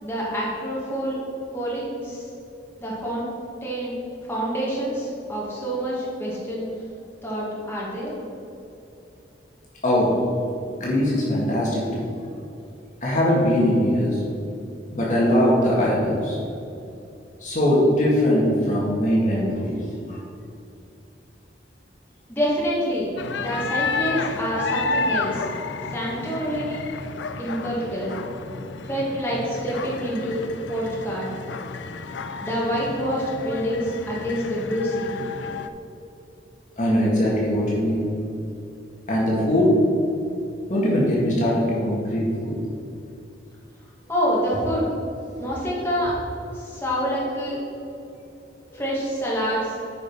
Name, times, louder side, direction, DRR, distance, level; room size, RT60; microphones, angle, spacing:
voice 1, 0.0-1.2 1.5-2.3 2.8-3.3 3.6-3.9 4.3-6.6 7.2-8.1 22.3-23.1 23.4-25.5 25.9-26.9 27.4-28.2 28.9-30.4 30.7-31.3 32.4-35.1 44.1-44.9 45.4-46.1 46.5-47.6 48.7-49.8, equal, 10° left, -7 dB, 2.1 m, -27 dB
voice 2, 10.8-12.1 13.0-14.2 14.9-16.4 17.4-19.8 20.1-20.2 36.8-38.1 39.1-39.7 40.7-42.5, left 1 dB, 45° left, -5 dB, 1.9 m, -21 dB
sound 1, 23.2-35.7, left 4 dB, 80° left, 0.5 m, -31 dB
9.4 x 5.1 x 5.4 m, 2.7 s
head